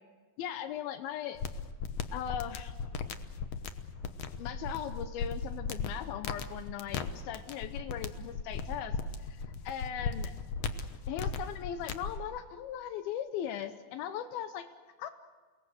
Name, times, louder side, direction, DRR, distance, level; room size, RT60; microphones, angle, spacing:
voice 1, 0.4-1.4 2.1-2.7 4.4-9.0 9.3-10.3 11.1-14.7 15.0-15.1, left 10 dB, 85° left, 9 dB, 2.7 m, -38 dB
sound 1, 1.3-12.2, left 5 dB, 65° left, 1.7 m, -37 dB
29.0 x 20.0 x 8.0 m, 1.4 s
omnidirectional pair, 4.2 m